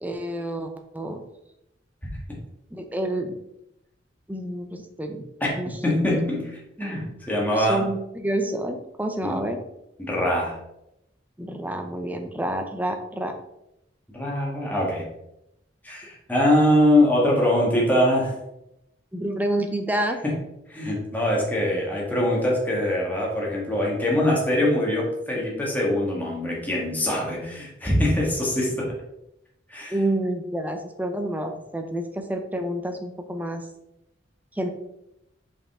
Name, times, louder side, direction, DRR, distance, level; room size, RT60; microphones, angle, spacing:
voice 1, 0.0-1.2 2.7-3.4 4.3-5.3 5.6-5.7 6.1-6.2 7.5-9.6 11.4-13.3 19.1-20.2 29.9-33.7 34.5-34.7, right 1 dB, 10° right, 6 dB, 0.6 m, -28 dB
voice 2, 5.8-6.5 6.8-7.8 9.2-9.4 10.0-10.6 14.1-15.1 15.8-18.4 20.2-20.3 20.7-28.9 29.7-30.0, left 1 dB, 10° left, -3 dB, 1.5 m, -23 dB
5.1 x 5.1 x 3.6 m, 0.84 s
head